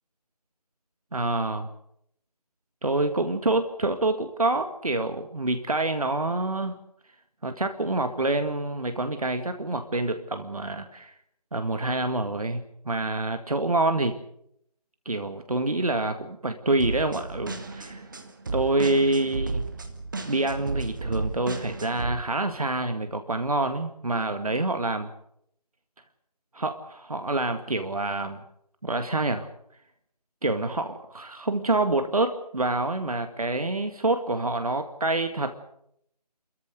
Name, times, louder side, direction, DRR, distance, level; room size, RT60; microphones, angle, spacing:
voice 1, 1.1-1.7 2.8-6.8 7.4-11.1 11.5-14.1 15.1-18.0 18.5-19.7 20.3-25.1 26.5-28.4 28.8-29.5 30.4-35.6, right 2 dB, 60° right, 7 dB, 2.0 m, -27 dB
sound 1, 16.8-22.1, right 3 dB, 30° right, 1.8 m, -33 dB
29.5 x 14.5 x 8.1 m, 0.74 s
figure-of-eight pair, 165°, 21 cm